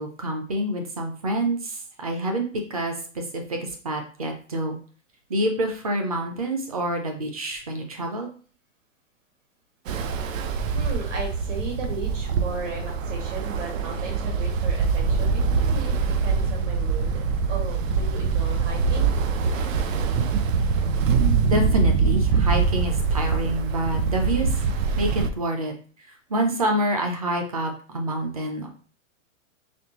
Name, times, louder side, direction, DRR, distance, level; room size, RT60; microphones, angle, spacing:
voice 1, 0.0-4.8 5.3-8.3 21.4-24.5 25.0-25.7 26.3-28.7, right 1 dB, 30° right, 4 dB, 0.4 m, -27 dB
Ocean, 9.9-25.3, right 5 dB, 85° right, 0.7 m, -24 dB
voice 2, 10.7-15.9 16.2-19.1, right 4 dB, 70° right, 0 dB, 2.0 m, -36 dB
4.2 x 3.3 x 2.9 m, 0.40 s
hypercardioid pair, 180°, 38 cm